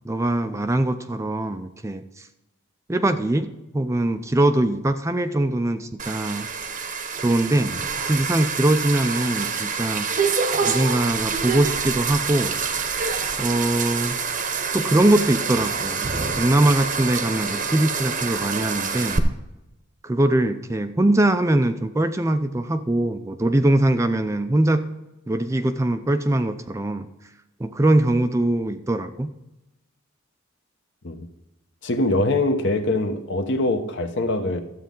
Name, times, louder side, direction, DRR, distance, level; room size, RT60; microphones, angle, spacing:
voice 1, 0.0-2.3 2.9-6.5 7.2-7.7 8.0-10.1 10.6-12.5 13.4-14.2 14.7-19.2 20.0-24.8 25.3-27.1 27.6-29.3, right 1 dB, 15° right, 0.4 m, -22 dB
sound 1, 6.0-19.2, right 5 dB, 35° right, 0.8 m, -26 dB
voice 2, 31.8-34.6, left 2 dB, 55° left, 1.0 m, -23 dB
12.5 x 8.3 x 3.8 m
head